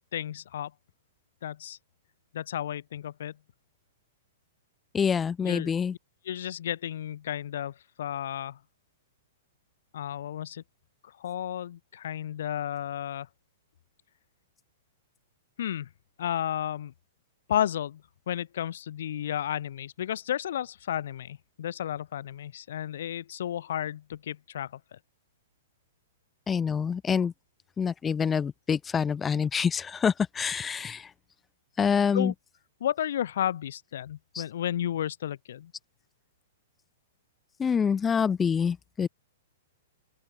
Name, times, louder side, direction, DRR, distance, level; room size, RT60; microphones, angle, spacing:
voice 1, 0.1-0.7 1.4-1.8 2.3-3.3 5.4-5.7 6.2-8.6 9.9-10.6 11.2-13.3 15.6-15.9 16.2-16.9 17.5-18.0 18.3-25.0 32.1-32.3 32.8-35.7, left 10 dB, 70° left, 0.6 m, -32 dB
voice 2, 4.9-5.9 26.5-27.3 27.8-31.1 31.8-32.3 34.3-34.4 37.6-39.1, left 6 dB, 15° left, 0.4 m, -26 dB
open air
hypercardioid pair, 130°, 0 cm